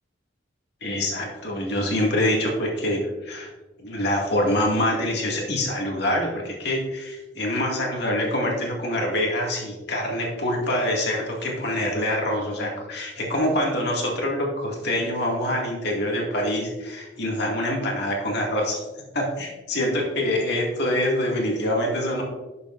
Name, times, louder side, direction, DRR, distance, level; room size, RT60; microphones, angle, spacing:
voice 1, 0.8-3.5 3.8-18.9 19.1-22.2, left 1 dB, 65° left, -1 dB, 2.1 m, -25 dB
11.5 x 6.8 x 2.5 m, 1.2 s
head